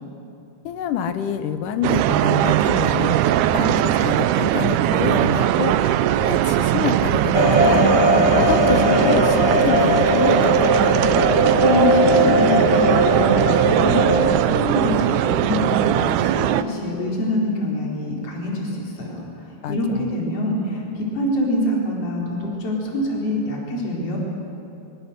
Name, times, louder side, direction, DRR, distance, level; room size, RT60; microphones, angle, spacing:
voice 1, 0.6-7.8 8.4-10.9 19.6-20.1, left 8 dB, 75° left, 10 dB, 2.4 m, -27 dB
sound 1, 1.8-16.6, right 12 dB, 75° right, 2.0 m, -20 dB
sound 2, 7.3-14.4, right 1 dB, 20° left, 0.8 m, -18 dB
voice 2, 11.2-14.2 14.4-24.2, left 1 dB, 45° left, -3 dB, 4.7 m, -25 dB
24.0 x 21.5 x 6.7 m, 2.8 s
omnidirectional pair, 3.8 m